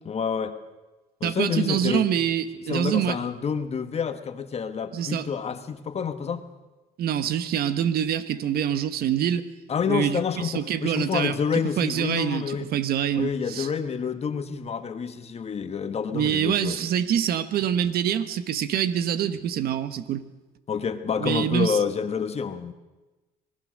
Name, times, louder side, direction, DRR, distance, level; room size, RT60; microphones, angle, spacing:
voice 1, 0.0-0.6 1.2-2.1 2.7-6.4 9.7-12.7 13.1-16.8 20.7-22.7, left 6 dB, 40° left, 9 dB, 1.5 m, -28 dB
voice 2, 1.2-3.2 4.9-5.3 7.0-9.5 9.9-11.4 11.8-13.7 16.1-20.2 21.2-21.8, right 9 dB, 65° right, 13 dB, 1.3 m, -25 dB
26.0 x 19.5 x 6.5 m, 1.1 s
cardioid pair, 110°, 17 cm